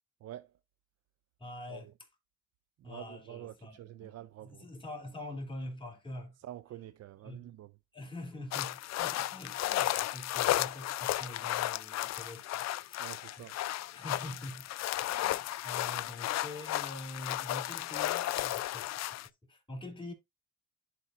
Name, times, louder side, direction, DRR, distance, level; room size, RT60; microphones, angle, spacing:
voice 1, 0.2-0.5 1.7-1.9 2.8-4.7 6.4-7.8 13.0-13.6, right 13 dB, 55° right, 0.5 m, -47 dB
voice 2, 1.4-1.9 2.8-4.1 4.4-6.4 7.2-7.4 7.9-13.1 13.4-13.5 13.9-19.2 19.5-20.1, left 1 dB, 15° left, 2.9 m, -45 dB
sound 1, 8.5-19.3, left 15 dB, 60° left, 0.4 m, -34 dB
11.0 x 4.3 x 2.4 m
cardioid pair, 90°, 30 cm